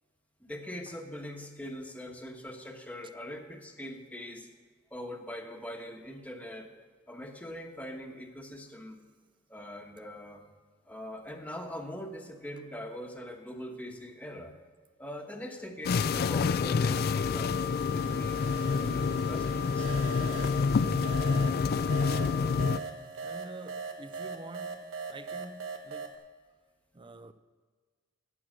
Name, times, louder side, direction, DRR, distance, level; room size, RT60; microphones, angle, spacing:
voice 1, 0.4-4.5 4.9-6.7 7.1-9.0 9.5-10.4 10.8-14.5 15.0-18.4 18.7-19.9, equal, 5° left, 1.2 m, -42 dB
sound 1, 15.8-22.8, left 5 dB, 50° left, 0.4 m, -28 dB
sound 2, 17.1-26.2, right 4 dB, 65° right, 1.3 m, -41 dB
voice 2, 23.2-26.2 26.9-27.3, right 2 dB, 25° right, 0.5 m, -47 dB
15.5 x 6.3 x 7.5 m
head